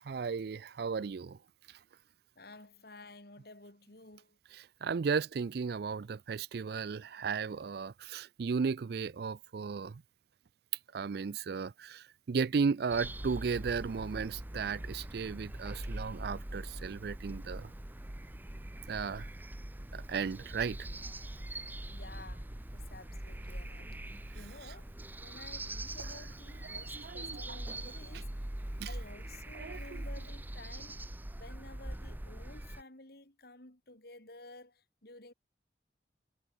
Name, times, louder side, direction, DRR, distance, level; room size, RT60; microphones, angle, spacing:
voice 1, 0.1-1.4 4.8-10.0 10.9-17.7 18.9-19.3 19.9-20.8 26.6-27.4 28.8-28.9 29.5-30.0, right 5 dB, 60° right, 0.4 m, -35 dB
voice 2, 2.4-4.4 21.9-24.0 24.3-24.9 25.2-28.5 28.9-31.0 31.4-35.3, left 2 dB, 60° left, 4.4 m, -53 dB
sound 1, 12.9-32.8, right 1 dB, 10° right, 0.6 m, -42 dB
head